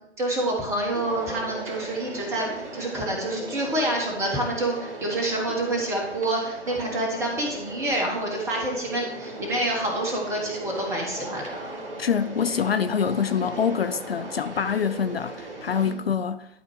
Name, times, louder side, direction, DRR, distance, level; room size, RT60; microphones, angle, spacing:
voice 1, 0.2-11.6 15.8-16.0, right 1 dB, 10° right, 1.1 m, -27 dB
sound 1, 0.9-15.9, right 2 dB, 50° right, 2.0 m, -38 dB
voice 2, 12.0-16.5, left 7 dB, 60° left, 0.5 m, -25 dB
12.0 x 4.1 x 4.7 m
figure-of-eight pair, 135°, 35 cm